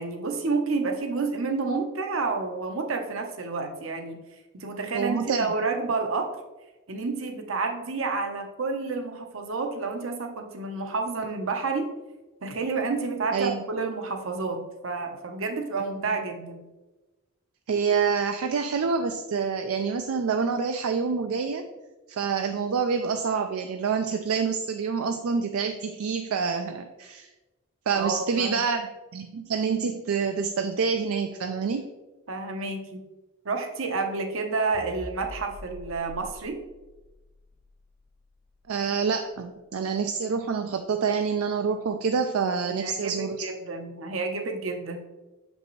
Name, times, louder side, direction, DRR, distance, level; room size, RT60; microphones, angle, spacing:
voice 1, 0.0-4.2 4.5-6.3 6.9-11.9 12.4-16.6 27.9-28.6 32.3-33.0 33.4-36.6 42.6-45.0, right 4 dB, 70° right, 4 dB, 0.8 m, -30 dB
voice 2, 4.9-5.5 13.3-13.6 17.7-21.7 22.1-27.3 27.9-31.9 38.7-43.4, right 5 dB, 85° right, 6 dB, 0.4 m, -27 dB
sound 1, 34.7-39.2, left 1 dB, 35° left, 0.4 m, -46 dB
6.9 x 5.3 x 3.1 m, 1.1 s
head